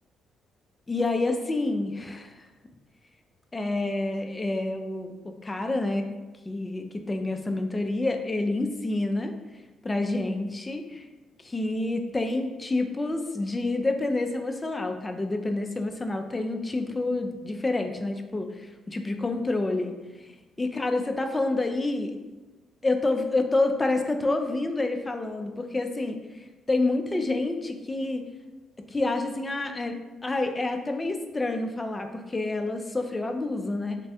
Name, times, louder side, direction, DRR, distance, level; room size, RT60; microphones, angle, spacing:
voice 1, 0.9-2.5 3.5-6.1 6.5-9.3 9.8-11.1 11.4-19.9 20.2-22.1 22.8-26.2 26.7-28.2 28.9-29.9 30.2-34.0, left 2 dB, 20° left, 5 dB, 0.3 m, -28 dB
3.1 x 2.2 x 2.7 m, 1.1 s
cardioid pair, 90°, 0 cm